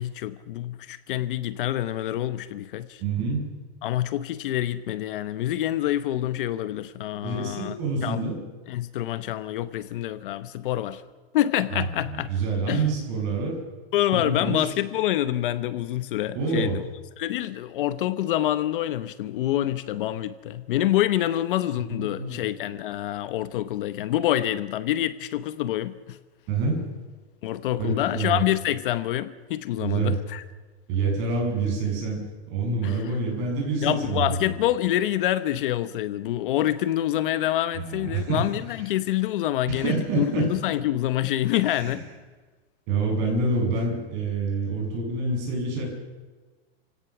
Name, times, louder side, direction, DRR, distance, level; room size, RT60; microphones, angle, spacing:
voice 1, 0.0-3.0 3.8-7.7 8.0-8.2 8.7-11.0 11.3-12.3 12.7-12.8 13.9-16.8 17.2-26.2 27.4-30.4 32.8-33.1 33.8-42.1, left 13 dB, 55° left, 1.0 m, -26 dB
voice 2, 3.0-3.5 7.2-8.4 12.1-13.6 14.1-14.7 16.3-16.8 21.8-22.4 26.5-26.8 27.8-28.4 29.8-30.2 30.9-34.5 37.7-38.5 39.7-40.5 41.7-42.0 42.9-45.9, right 3 dB, 35° right, 7.7 m, -27 dB
28.5 x 17.0 x 6.0 m
supercardioid pair, 175°, 33 cm